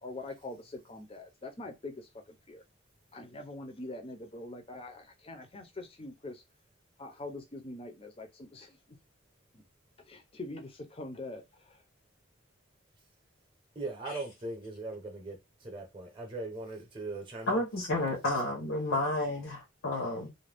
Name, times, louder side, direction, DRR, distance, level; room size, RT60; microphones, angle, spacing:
voice 1, 0.0-2.6 3.1-6.4 7.0-9.0 9.5-9.6 10.0-11.8, left 2 dB, 25° left, 0.5 m, -44 dB
voice 2, 13.7-17.6, right 2 dB, 25° right, 0.7 m, -40 dB
voice 3, 17.5-20.3, left 1 dB, 75° left, 0.9 m, -31 dB
2.5 x 2.2 x 3.4 m
head